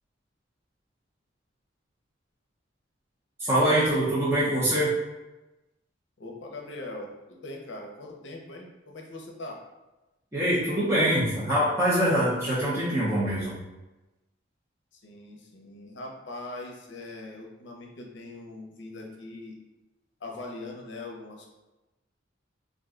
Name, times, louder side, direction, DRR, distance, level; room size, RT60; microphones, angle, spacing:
voice 1, 3.4-4.9 10.3-13.6, right 1 dB, 15° right, -11 dB, 0.6 m, -24 dB
voice 2, 6.2-9.6 14.9-19.5 20.2-21.5, left 2 dB, 65° left, 0 dB, 0.6 m, -41 dB
2.5 x 2.2 x 3.7 m, 1.0 s
head